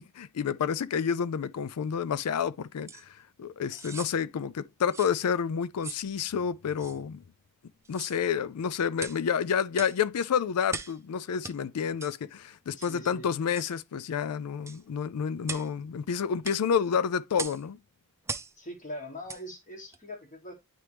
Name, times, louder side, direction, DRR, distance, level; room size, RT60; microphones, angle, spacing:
voice 1, 0.0-7.2 7.9-17.8, left 7 dB, 85° left, 0.4 m, -29 dB
sound 1, 2.9-3.0 3.7-4.1 4.9-5.2 5.8-6.1 6.8-7.0 7.8-8.2 9.0-9.2 9.7-10.0 10.7-11.0 11.4-11.6 12.0-12.2 12.8-13.0 13.6-13.7 14.7-14.8 15.4-15.7 16.4-16.6 17.4-17.6 18.3-18.5 19.3-19.4 19.9-20.0, right 4 dB, 10° right, 0.5 m, -39 dB
voice 2, 12.7-13.3 18.5-20.5, left 1 dB, 35° left, 1.3 m, -42 dB
9.6 x 3.4 x 3.0 m
head